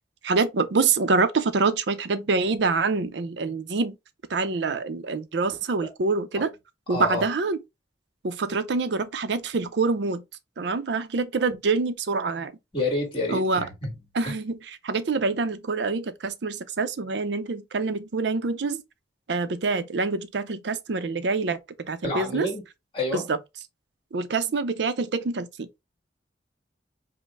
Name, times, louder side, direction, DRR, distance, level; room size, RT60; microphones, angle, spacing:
voice 1, 0.2-4.0 4.3-6.5 6.9-7.6 8.2-10.2 10.6-12.5 13.3-13.7 14.1-18.8 19.3-22.5 23.1-23.4 24.1-25.7, right 4 dB, 70° right, 0.5 m, -26 dB
voice 2, 6.9-7.2 12.7-13.9 14.2-14.3 22.0-22.6 22.9-23.2, left 1 dB, 30° left, 1.7 m, -28 dB
5.2 x 2.1 x 3.4 m
head